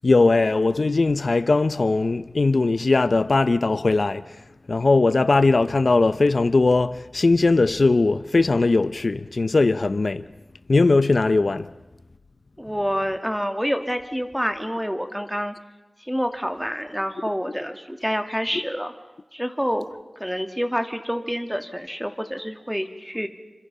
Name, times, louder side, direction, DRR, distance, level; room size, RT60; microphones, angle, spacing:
voice 1, 0.0-4.4 4.7-10.2 10.7-11.7, left 3 dB, 70° left, 0.8 m, -19 dB
voice 2, 12.6-15.5 16.0-18.9 19.3-19.9 20.2-23.3, equal, 5° right, 2.7 m, -27 dB
29.5 x 25.5 x 5.6 m
cardioid pair, 40°, 0 cm